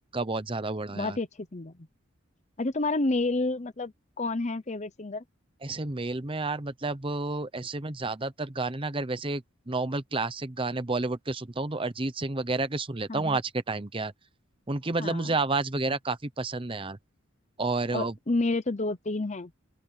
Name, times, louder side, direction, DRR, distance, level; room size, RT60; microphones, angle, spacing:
voice 1, 0.1-1.2 5.6-14.1 14.7-17.0 17.6-18.1, right 3 dB, 25° right, 0.9 m, -30 dB
voice 2, 0.9-1.9 2.6-5.2 13.1-13.4 15.0-15.3 17.9-19.5, left 2 dB, 35° left, 0.8 m, -30 dB
open air
head